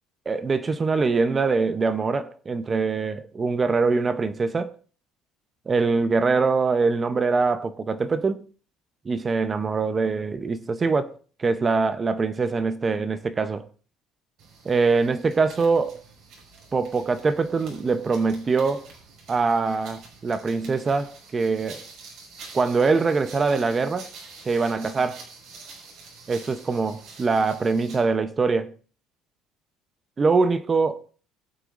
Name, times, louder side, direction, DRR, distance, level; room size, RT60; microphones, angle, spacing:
voice 1, 0.3-4.7 5.7-8.4 9.0-13.6 14.6-16.0 16.7-18.9 19.3-21.8 22.5-24.1 24.4-25.2 26.3-28.7 30.2-31.0, right 4 dB, 25° right, 0.8 m, -23 dB
sound 1, 14.4-28.1, right 4 dB, 65° right, 5.5 m, -47 dB
21.5 x 8.2 x 2.6 m
cardioid pair, 120°, 0 cm